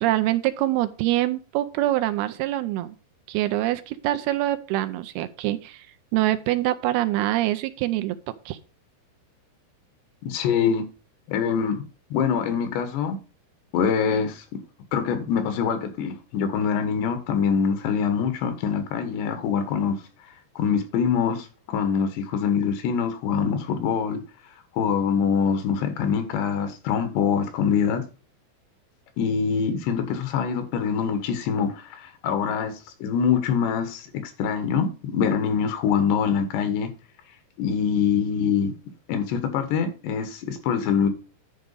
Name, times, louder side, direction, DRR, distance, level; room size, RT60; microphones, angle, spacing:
voice 1, 0.0-3.0 3.3-5.9 6.1-8.2 8.5-8.6, right 15 dB, 80° right, 2.5 m, -24 dB
voice 2, 10.2-10.9 11.3-11.9 12.1-13.2 13.7-14.6 14.9-20.0 20.6-24.2 24.8-28.0 29.2-32.7 33.0-36.9 37.6-38.7 39.1-41.1, left 6 dB, 85° left, 3.5 m, -24 dB
10.5 x 4.9 x 5.4 m
omnidirectional pair, 4.8 m